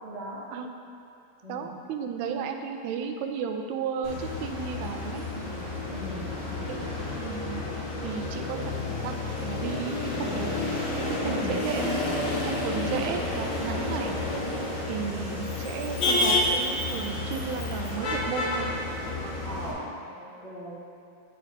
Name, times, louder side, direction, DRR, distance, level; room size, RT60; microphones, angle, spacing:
voice 1, 0.0-0.4 1.4-1.7 5.3-6.8 11.2-11.6 12.8-13.2 15.1-15.6 19.4-20.8, equal, 25° right, -11 dB, 0.8 m, -39 dB
voice 2, 1.5-5.3 6.7-7.6 8.0-8.7 9.0-10.6 11.0-12.0 12.4-14.1 14.9-18.7 19.7-19.8, right 6 dB, 80° right, 4 dB, 1.7 m, -34 dB
Motor vehicle (road), 4.0-19.7, left 2 dB, 50° left, 1.3 m, -30 dB
9.7 x 6.4 x 2.7 m, 2.5 s
omnidirectional pair, 3.9 m